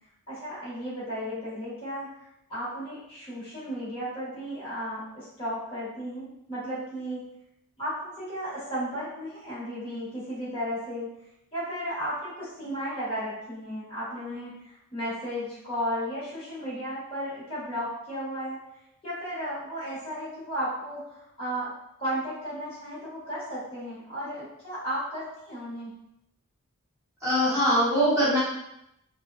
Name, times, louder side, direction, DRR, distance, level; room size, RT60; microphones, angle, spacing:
voice 1, 0.3-2.2 2.5-7.2 7.8-11.1 11.5-18.6 19.0-21.7 22.0-25.9, equal, 25° left, -11 dB, 1.0 m, -34 dB
voice 2, 27.2-28.4, equal, 15° right, -10 dB, 1.0 m, -22 dB
2.8 x 2.1 x 2.3 m, 0.82 s
head